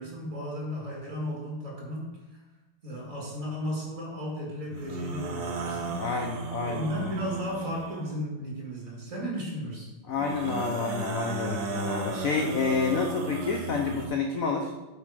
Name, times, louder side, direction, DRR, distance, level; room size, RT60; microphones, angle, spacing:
voice 1, 0.0-2.4 2.8-6.0 6.6-9.9, equal, 40° right, -3 dB, 2.4 m, -35 dB
sound 1, 4.7-8.1 10.1-14.1, right 3 dB, 70° right, 1.8 m, -35 dB
voice 2, 6.0-7.1 10.1-14.7, left 4 dB, 70° left, 3 dB, 0.8 m, -29 dB
7.8 x 5.4 x 4.9 m, 1.1 s
omnidirectional pair, 2.3 m